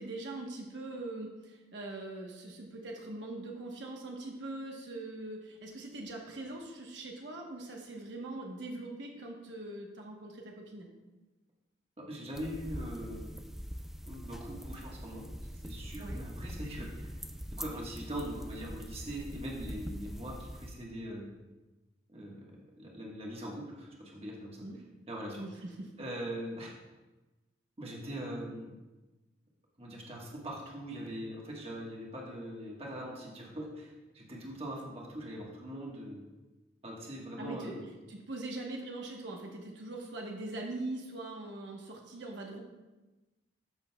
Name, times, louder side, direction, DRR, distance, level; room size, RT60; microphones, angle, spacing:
voice 1, 0.0-10.9 16.0-16.2 24.6-24.8 25.4-25.9 37.4-37.7 38.1-42.6, right 2 dB, 70° right, 0 dB, 1.1 m, -42 dB
voice 2, 12.0-13.4 14.1-15.3 15.6-17.1 17.5-21.3 22.1-22.4 22.8-24.7 25.1-25.6 26.0-26.7 27.8-28.8 29.8-36.2 36.8-37.8, equal, 30° right, -3 dB, 1.4 m, -41 dB
sound 1, 12.3-20.7, equal, ahead, 0.4 m, -43 dB
13.0 x 6.3 x 2.3 m, 1.1 s
head